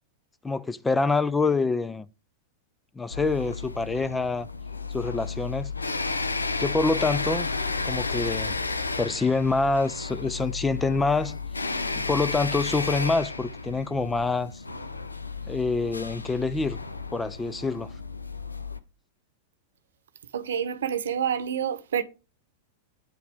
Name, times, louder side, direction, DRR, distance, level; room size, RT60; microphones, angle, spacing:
voice 1, 0.4-2.0 3.0-4.5 4.9-5.7 6.6-7.5 7.8-8.6 9.0-11.4 12.0-14.5 15.5-16.8 17.1-17.9, left 3 dB, 10° left, 0.5 m, -26 dB
sound 1, 3.1-18.8, left 4 dB, 85° left, 0.6 m, -32 dB
voice 2, 20.3-22.0, right 8 dB, 70° right, 0.8 m, -28 dB
9.4 x 4.7 x 3.5 m
figure-of-eight pair, 95°, 0 cm